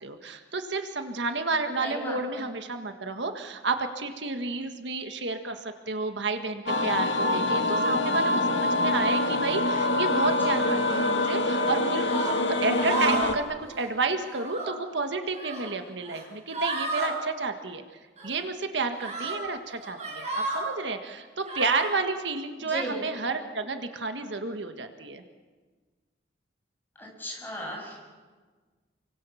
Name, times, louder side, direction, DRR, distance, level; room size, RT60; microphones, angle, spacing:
voice 1, 0.0-17.8 18.2-25.2, right 3 dB, 70° right, 6 dB, 1.7 m, -31 dB
voice 2, 1.8-2.5 10.5-11.0 22.6-23.0 27.0-28.0, equal, 10° left, -1 dB, 7.1 m, -37 dB
sound 1, 6.7-13.3, left 2 dB, 80° left, 1.7 m, -25 dB
sound 2, 12.0-12.3 12.7-13.3 13.6-13.9 14.2-14.7 15.2-15.7 16.0-16.2 16.5-17.1 18.2-18.3 19.0-19.4 19.8-20.7 21.4-21.9, right 2 dB, 35° right, 7.3 m, -32 dB
29.0 x 24.0 x 7.2 m, 1.4 s
head